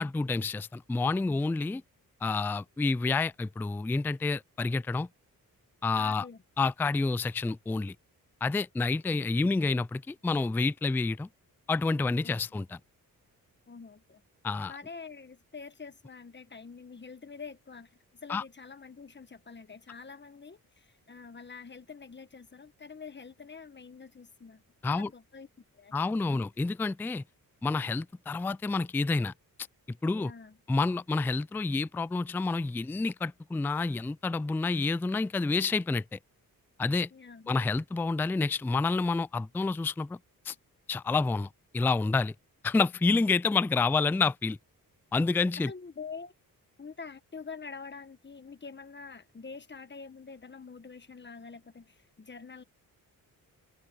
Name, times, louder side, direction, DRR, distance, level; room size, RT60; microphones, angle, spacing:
voice 1, 0.0-1.8 2.2-5.1 5.8-6.3 6.6-7.9 8.4-11.3 11.7-12.8 14.4-14.7 18.3-18.4 24.8-25.1 25.9-27.2 27.6-29.3 30.0-30.3 30.7-36.2 36.8-37.1 37.5-40.2 40.5-40.6 40.9-42.3 42.6-44.6 45.1-45.7, left 3 dB, 5° left, 0.3 m, -28 dB
voice 2, 6.0-6.4 12.2-12.3 13.7-14.2 14.7-25.5 25.7-26.4 30.2-30.6 37.1-37.5 45.6-46.3 46.8-52.6, left 5 dB, 30° left, 1.4 m, -46 dB
cardioid pair, 90°, 35 cm